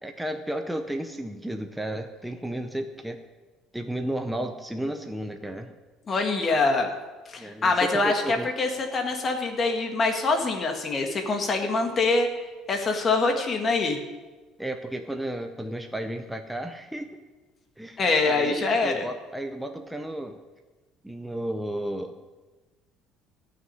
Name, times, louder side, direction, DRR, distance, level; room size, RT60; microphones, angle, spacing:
voice 1, 0.0-3.2 3.7-5.7 7.4-8.5 14.6-17.2 17.8-20.4 21.0-22.2, right 1 dB, 5° right, 5 dB, 0.7 m, -33 dB
voice 2, 6.1-6.9 7.3-12.3 12.7-14.0 18.0-19.0, left 3 dB, 25° left, 3 dB, 1.7 m, -24 dB
13.5 x 6.4 x 9.7 m, 1.2 s
cardioid pair, 170°, 0 cm